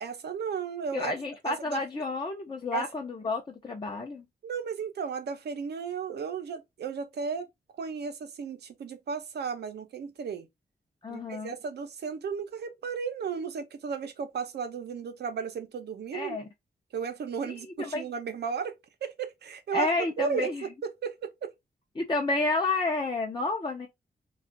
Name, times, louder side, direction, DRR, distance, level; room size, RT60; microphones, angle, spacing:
voice 1, 0.0-1.1 1.4-1.8 2.7-2.9 4.4-7.5 7.8-10.5 11.1-16.4 16.9-19.9 20.2-20.5 20.8-21.5, right 6 dB, 85° right, 0.7 m, -34 dB
voice 2, 0.9-4.3 11.0-11.5 16.1-16.4 17.5-18.1 19.7-20.7 22.0-23.9, left 3 dB, 30° left, 0.6 m, -30 dB
2.4 x 2.4 x 3.7 m
wide cardioid pair, 110°, 17 cm